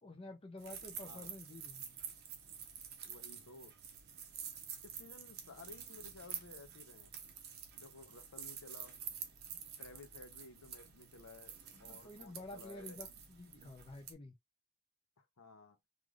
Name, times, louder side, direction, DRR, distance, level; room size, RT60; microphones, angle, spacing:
voice 1, 0.0-2.0 11.7-14.3, left 2 dB, 25° left, 0.4 m, -50 dB
sound 1, 0.6-14.1, right 8 dB, 45° right, 0.6 m, -49 dB
voice 2, 1.1-1.4 3.0-3.7 4.8-7.1 7.7-9.0 9.8-13.0 15.4-15.8, left 3 dB, 75° left, 0.7 m, -55 dB
3.2 x 2.5 x 2.3 m
head